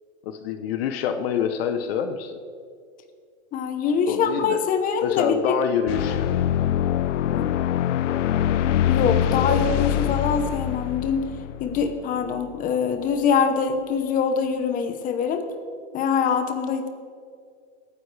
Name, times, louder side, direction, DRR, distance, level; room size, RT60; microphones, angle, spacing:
voice 1, 0.2-2.4 3.8-4.6 5.0-6.3 7.2-7.6, left 8 dB, 55° left, 8 dB, 1.0 m, -27 dB
voice 2, 3.5-5.5 7.3-7.5 8.9-11.3 11.6-15.4 15.9-16.9, left 6 dB, 25° left, 7 dB, 1.0 m, -24 dB
sound 1, 5.9-12.5, left 11 dB, 85° left, 0.6 m, -24 dB
23.0 x 9.7 x 3.4 m, 2.2 s
hypercardioid pair, 135°, 36 cm